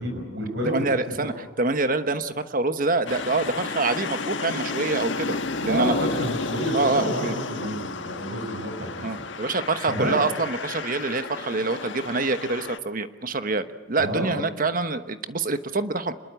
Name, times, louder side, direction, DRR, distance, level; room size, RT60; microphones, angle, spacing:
voice 1, 0.0-1.1 5.7-9.1 9.9-10.2 14.0-14.4, equal, 65° right, 3 dB, 6.2 m, -29 dB
voice 2, 0.7-1.3 1.6-5.9 6.7-7.3 9.0-16.1, right 3 dB, 50° right, 10 dB, 1.2 m, -26 dB
sound 1, 3.1-12.8, left 3 dB, 85° left, 1.5 m, -32 dB
26.5 x 21.5 x 8.3 m, 1.2 s
head